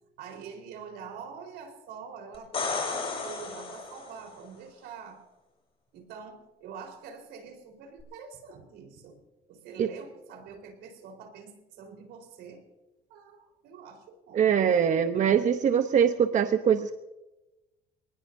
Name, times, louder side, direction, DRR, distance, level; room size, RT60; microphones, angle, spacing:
voice 1, 0.2-5.2 5.9-9.2 9.5-12.6 13.1-14.5, right 6 dB, 85° right, 3 dB, 4.3 m, -45 dB
sound 1, 2.3-4.3 8.0-8.1, left 4 dB, 35° left, 7.1 m, -33 dB
voice 2, 14.3-16.9, right 8 dB, 45° right, 7 dB, 0.9 m, -23 dB
27.5 x 19.0 x 2.7 m, 1.0 s
cardioid pair, 110°, 17 cm